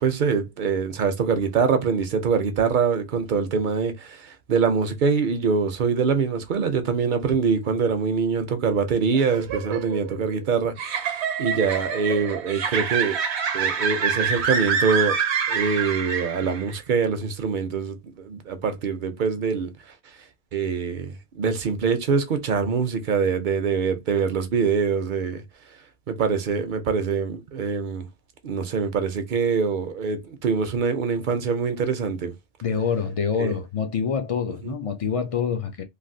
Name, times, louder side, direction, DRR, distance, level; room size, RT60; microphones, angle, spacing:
voice 1, 0.0-11.1 11.4-13.2 13.5-15.2 15.5-19.7 20.5-25.4 26.1-28.1 28.4-32.3 33.4-33.5 34.6-34.7, right 5 dB, 60° right, 0.6 m, -24 dB
sound 1, 9.1-16.7, right 6 dB, 75° right, 0.9 m, -26 dB
voice 2, 32.6-35.8, left 6 dB, 65° left, 0.3 m, -26 dB
3.2 x 2.3 x 2.6 m
omnidirectional pair, 1.1 m